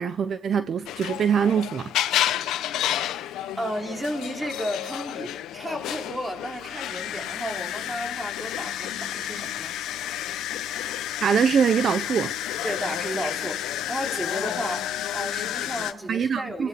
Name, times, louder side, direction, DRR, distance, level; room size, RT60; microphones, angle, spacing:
voice 1, 0.0-1.9 11.2-12.3 16.1-16.7, right 7 dB, 55° right, 0.8 m, -23 dB
sound 1, 0.9-15.9, left 12 dB, 85° left, 1.0 m, -30 dB
voice 2, 3.6-9.7 12.6-16.7, equal, 15° right, 4.3 m, -33 dB
29.0 x 17.0 x 6.0 m
cardioid pair, 90°, 0 cm